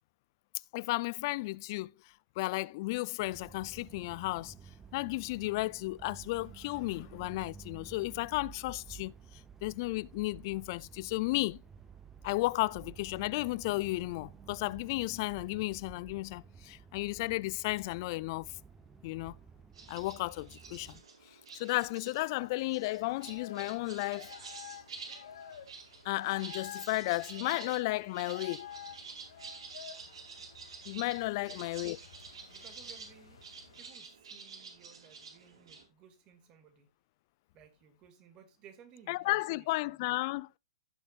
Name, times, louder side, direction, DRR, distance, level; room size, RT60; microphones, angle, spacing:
voice 1, 0.7-1.9 2.4-4.5 4.9-9.1 9.6-11.6 12.2-18.5 19.0-19.3 19.9-21.0 21.5-24.3 26.0-28.7 30.9-32.0 39.1-40.5, left 21 dB, 45° left, 0.4 m, -33 dB
sound 1, 3.2-21.0, right 6 dB, 10° right, 0.8 m, -53 dB
sound 2, 19.7-35.8, right 5 dB, 70° right, 4.3 m, -49 dB
sound 3, 22.7-33.9, left 8 dB, 70° left, 2.4 m, -51 dB
voice 2, 32.3-33.4 33.8-36.9 37.5-40.2, right 8 dB, 30° right, 2.4 m, -59 dB
16.0 x 6.8 x 2.5 m
hypercardioid pair, 135°, 3 cm